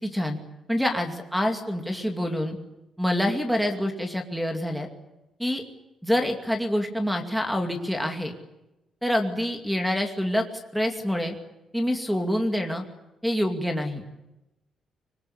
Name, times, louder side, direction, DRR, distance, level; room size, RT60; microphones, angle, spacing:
voice 1, 0.0-0.4 0.7-2.6 3.0-4.9 5.4-5.6 6.0-8.3 9.0-10.4 10.7-11.4 11.7-12.8 13.2-14.0, equal, ahead, 5 dB, 2.4 m, -26 dB
24.5 x 21.5 x 9.9 m, 0.95 s
cardioid pair, 170°, 0 cm